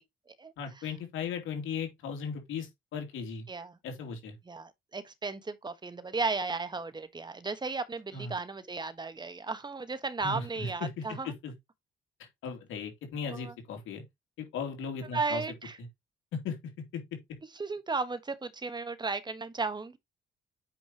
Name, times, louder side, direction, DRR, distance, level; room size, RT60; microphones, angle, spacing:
voice 1, 0.6-3.4 3.8-4.3 8.1-8.3 10.2-11.5 12.4-14.0 14.4-15.4 16.3-16.6 16.9-17.2, left 5 dB, 85° left, 2.9 m, -37 dB
voice 2, 4.5-11.3 13.2-13.5 15.1-15.8 17.6-20.0, right 3 dB, 20° right, 1.3 m, -35 dB
8.7 x 5.3 x 2.9 m
cardioid pair, 90°, 20 cm